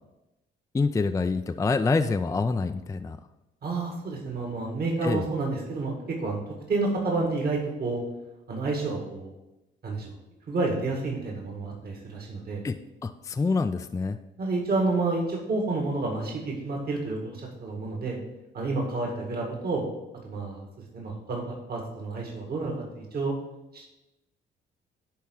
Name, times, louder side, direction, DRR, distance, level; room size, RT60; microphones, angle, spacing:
voice 1, 0.7-3.2 5.0-5.3 12.6-12.8 13.0-14.2, left 4 dB, 15° left, 8 dB, 0.4 m, -26 dB
voice 2, 3.6-6.4 6.7-8.0 8.5-9.3 9.8-10.1 10.5-12.6 14.4-18.2 18.5-19.8 20.2-20.6 20.9-23.3 23.7-23.9, right 3 dB, 50° right, 0 dB, 1.9 m, -29 dB
10.5 x 3.5 x 6.3 m, 0.98 s
cardioid pair, 90°, 20 cm